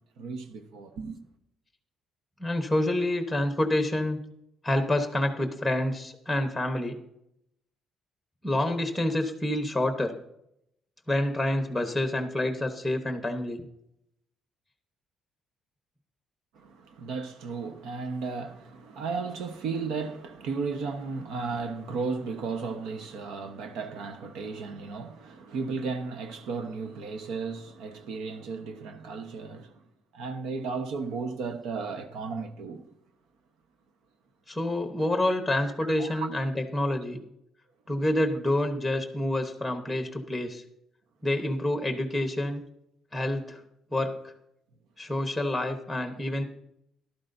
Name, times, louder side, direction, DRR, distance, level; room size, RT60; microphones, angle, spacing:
voice 1, 0.2-1.2 16.6-29.7 30.1-32.8 36.0-36.3, right 4 dB, 85° right, 1.1 m, -34 dB
voice 2, 2.4-4.2 4.6-7.0 8.4-10.1 11.1-13.6 34.5-37.2 37.9-40.6 41.2-42.6 43.1-43.6 43.9-44.3 45.0-46.4, left 1 dB, ahead, 1.0 m, -28 dB
14.5 x 12.0 x 2.6 m
cardioid pair, 135°, 0 cm